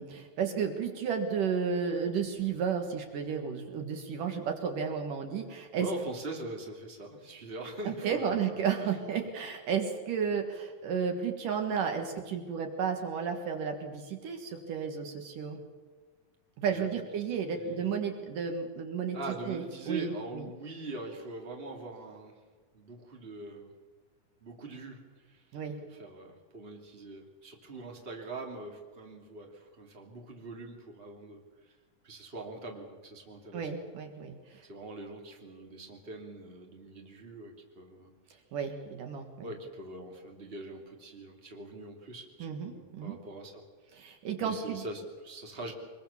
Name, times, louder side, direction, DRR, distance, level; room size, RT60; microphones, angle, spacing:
voice 1, 0.0-5.9 7.8-15.6 16.6-19.2 19.5-20.4 25.5-25.8 33.5-34.6 38.5-39.5 42.4-43.2 43.9-44.8, right 6 dB, 65° right, 5 dB, 3.1 m, -33 dB
voice 2, 5.8-8.6 9.2-9.3 16.7-16.9 17.5-17.9 19.1-22.4 22.7-23.7 24.4-25.0 25.3-25.4 25.9-31.7 32.0-33.7 34.7-38.1 39.4-43.6 44.4-45.7, right 2 dB, 15° right, 1 dB, 2.9 m, -43 dB
24.5 x 22.0 x 7.2 m, 1.4 s
omnidirectional pair, 4.1 m